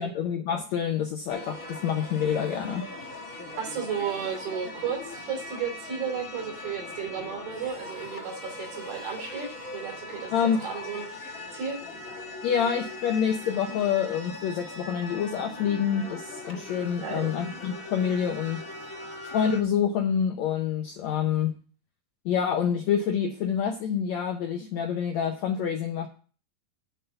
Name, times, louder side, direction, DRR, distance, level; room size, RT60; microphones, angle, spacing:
voice 1, 0.0-2.9 10.3-10.6 12.4-18.6 19.3-21.5 22.3-26.1, left 8 dB, 80° left, 4 dB, 1.6 m, -27 dB
sound 1, 1.3-19.6, left 2 dB, 45° left, 1.0 m, -40 dB
voice 2, 3.6-9.5 9.7-11.1 11.5-11.8 17.0-17.3, right 7 dB, 80° right, 1 dB, 4.6 m, -33 dB
9.8 x 3.9 x 6.8 m, 0.40 s
omnidirectional pair, 4.0 m